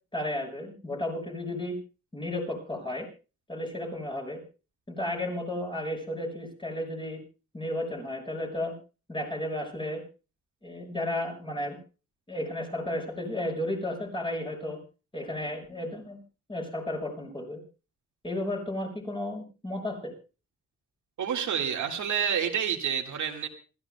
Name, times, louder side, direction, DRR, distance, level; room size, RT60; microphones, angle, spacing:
voice 1, 0.1-1.8 2.1-3.1 3.5-4.4 4.9-7.2 7.5-8.7 9.1-10.0 10.6-11.8 12.3-14.8 15.1-16.2 16.5-17.6 18.2-20.1, left 1 dB, 15° left, 0 dB, 6.4 m, -33 dB
voice 2, 21.2-23.5, right 8 dB, 70° right, 3 dB, 1.9 m, -28 dB
27.0 x 14.0 x 2.2 m, 0.33 s
wide cardioid pair, 130°, 30 cm